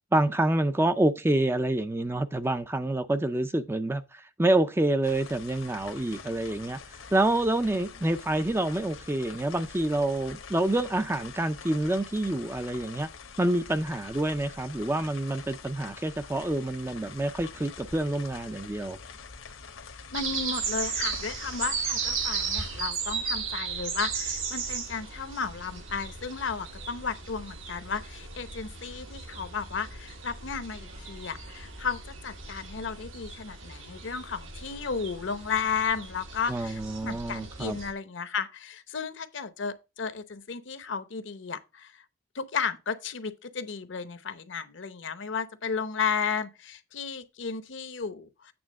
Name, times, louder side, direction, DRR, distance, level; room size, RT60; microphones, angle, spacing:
voice 1, 0.1-13.1 13.4-19.0 36.5-37.8, right 1 dB, 10° right, 0.4 m, -27 dB
sound 1, 5.0-22.9, left 5 dB, 80° left, 1.1 m, -45 dB
voice 2, 20.1-41.9 42.3-48.5, left 5 dB, 60° left, 0.8 m, -34 dB
sound 2, 20.1-37.9, right 5 dB, 80° right, 1.8 m, -36 dB
8.8 x 3.4 x 6.2 m
head